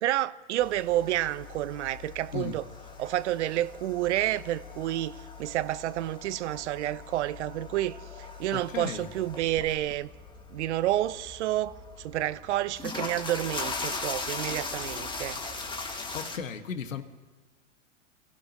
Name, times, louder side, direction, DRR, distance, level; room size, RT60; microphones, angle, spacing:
voice 1, 0.0-2.6 3.0-10.1 10.5-15.4, right 14 dB, 60° right, 0.8 m, -30 dB
sound 1, 0.6-16.4, left 3 dB, 10° left, 1.9 m, -40 dB
voice 2, 8.5-9.1 16.1-17.0, left 7 dB, 80° left, 1.7 m, -35 dB
27.5 x 15.5 x 3.0 m
hypercardioid pair, 105°, 39 cm